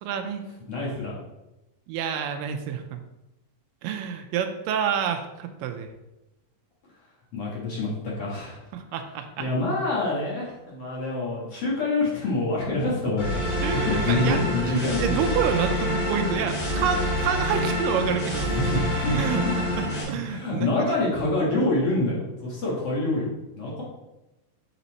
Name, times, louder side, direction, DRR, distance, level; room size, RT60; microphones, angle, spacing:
voice 1, 0.0-0.4 1.9-3.0 3.8-5.9 8.7-9.5 13.6-18.5 19.1-21.0, right 8 dB, 85° right, 6 dB, 2.2 m, -28 dB
voice 2, 0.7-1.2 7.3-8.6 9.4-15.2 18.4-18.5 19.0-19.5 20.1-23.3 23.6-23.8, left 2 dB, 50° left, -5 dB, 2.1 m, -26 dB
sound 1, 13.2-20.0, equal, 85° left, 4.4 m, -27 dB
8.0 x 4.2 x 4.0 m, 0.97 s
omnidirectional pair, 3.9 m